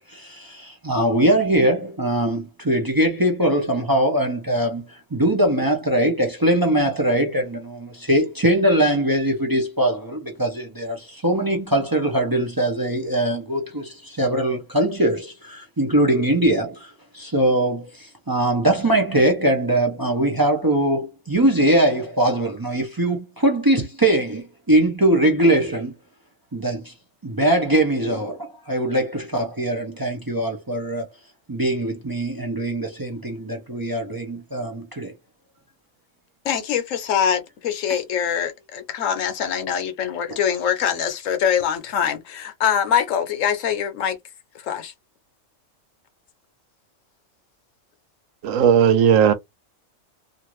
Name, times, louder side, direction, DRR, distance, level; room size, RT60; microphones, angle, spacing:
voice 1, 0.1-25.9 26.5-26.9 27.2-31.1 31.5-35.1, right 1 dB, 30° right, 0.4 m, -21 dB
voice 2, 36.4-44.2 44.5-44.9, left 8 dB, 75° left, 1.1 m, -23 dB
voice 3, 48.4-49.3, right 8 dB, 80° right, 1.0 m, -15 dB
2.5 x 2.5 x 3.0 m
omnidirectional pair, 1.3 m